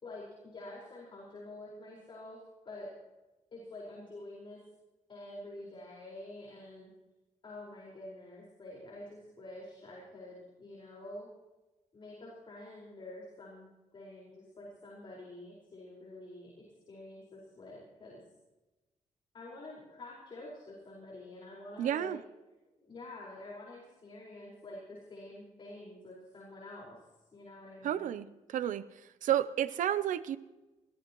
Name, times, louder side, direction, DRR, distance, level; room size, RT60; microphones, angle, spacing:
voice 1, 0.0-2.4 2.6-2.9 3.5-4.6 5.1-6.9 7.4-11.3 11.9-18.2 19.3-22.1 22.8-27.0 27.3-28.2, left 2 dB, 40° left, -4 dB, 5.0 m, -48 dB
voice 2, 21.8-22.2 27.8-28.8 29.2-30.4, right 11 dB, 90° right, 14 dB, 0.7 m, -31 dB
21.5 x 16.5 x 3.1 m, 1.1 s
cardioid pair, 125°, 13 cm